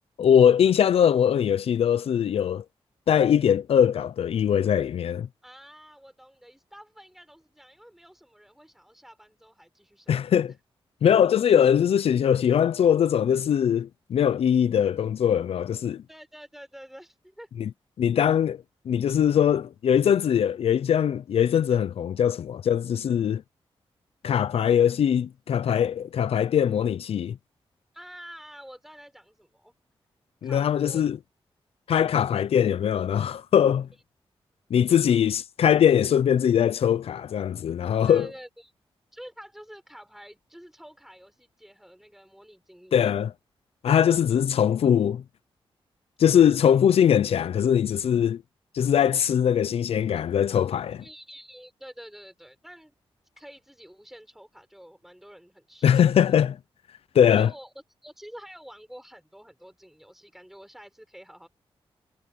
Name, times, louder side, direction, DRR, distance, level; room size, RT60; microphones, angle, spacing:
voice 1, 0.2-2.6 3.1-5.3 10.1-10.5 11.0-16.0 17.6-17.7 18.0-18.6 18.9-23.4 24.2-27.4 30.4-31.2 31.9-33.9 34.7-38.3 42.9-43.3 43.8-45.2 46.2-48.4 48.7-51.0 55.8-56.6 57.1-57.5, left 9 dB, 80° left, 0.6 m, -21 dB
voice 2, 5.4-10.5 11.5-11.6 16.1-17.5 27.9-29.7 30.4-31.0 38.1-38.7 39.1-43.0 51.0-52.9 53.4-56.4 57.2-61.5, equal, 5° right, 5.7 m, -48 dB
cardioid pair, 95°, 10 cm